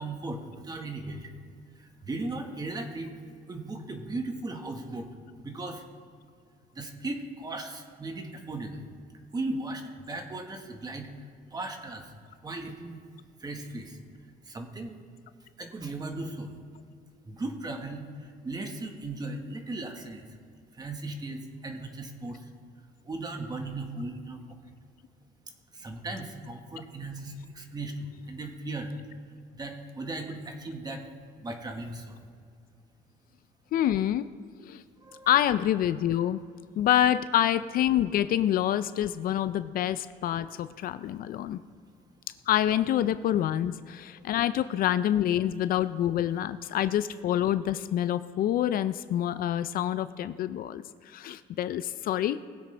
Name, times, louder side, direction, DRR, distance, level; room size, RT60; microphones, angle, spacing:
voice 1, 0.0-1.3 1.7-3.1 3.5-5.1 5.4-5.8 6.7-8.8 9.3-12.2 12.4-13.0 13.4-14.0 14.4-15.0 15.6-16.6 17.2-20.3 20.7-22.5 23.0-24.4 25.7-28.9 29.5-31.1 31.4-32.2 35.0-35.3 36.8-36.9 44.1-44.2, right 2 dB, 25° right, 4 dB, 1.5 m, -37 dB
voice 2, 33.7-34.3 34.6-34.8 35.3-36.4 36.8-41.6 42.5-52.4, left 11 dB, 60° left, 13 dB, 0.4 m, -27 dB
20.0 x 7.9 x 3.4 m, 2.2 s
cardioid pair, 110°, 17 cm